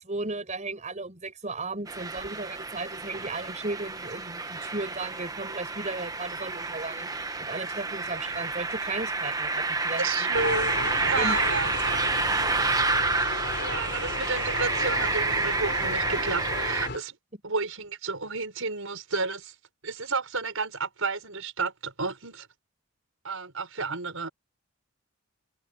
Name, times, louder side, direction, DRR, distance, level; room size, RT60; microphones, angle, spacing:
voice 1, 0.0-7.1 7.4-10.3 11.2-11.4, right 2 dB, 35° right, 5.9 m, -35 dB
sound 1, 1.9-16.9, right 3 dB, 15° right, 1.1 m, -29 dB
voice 2, 10.0-12.0 13.6-17.2 17.4-19.5 19.8-22.5 23.2-24.3, right 4 dB, 70° right, 5.6 m, -32 dB
sound 2, 10.3-17.0, left 3 dB, 50° left, 3.6 m, -34 dB
head